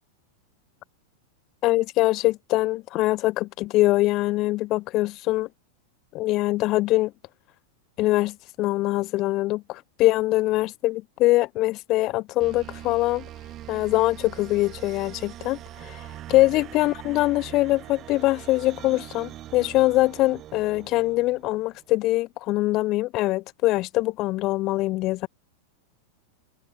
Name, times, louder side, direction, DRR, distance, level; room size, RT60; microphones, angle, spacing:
voice 1, 1.6-5.5 6.1-7.1 8.0-13.2 13.7-25.3, left 18 dB, 40° left, 0.4 m, -23 dB
sound 1, 12.4-21.8, right 13 dB, 35° right, 1.3 m, -42 dB
open air
figure-of-eight pair, 90°, 0 cm